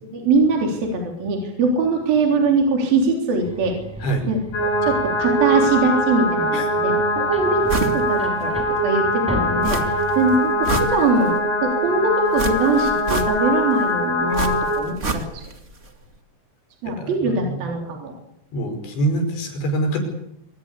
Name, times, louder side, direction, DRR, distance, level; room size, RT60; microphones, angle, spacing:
voice 1, 0.0-3.8 4.3-6.9 7.3-11.3 11.6-15.4 16.8-18.1, right 3 dB, 55° right, 1 dB, 5.3 m, -22 dB
sound 1, 3.4-10.4, right 1 dB, ahead, 4.7 m, -35 dB
sound 2, 4.5-14.8, equal, 50° left, 7.5 m, -22 dB
sound 3, 7.7-8.0 8.4-8.5 9.6-10.1 10.5-11.4 12.3-13.6 14.3-15.6 15.8-15.9, right 2 dB, 30° right, 1.3 m, -27 dB
voice 2, 16.9-17.7 18.5-20.0, right 2 dB, 80° left, 6 dB, 7.6 m, -25 dB
26.0 x 19.5 x 8.5 m, 0.79 s
omnidirectional pair, 5.1 m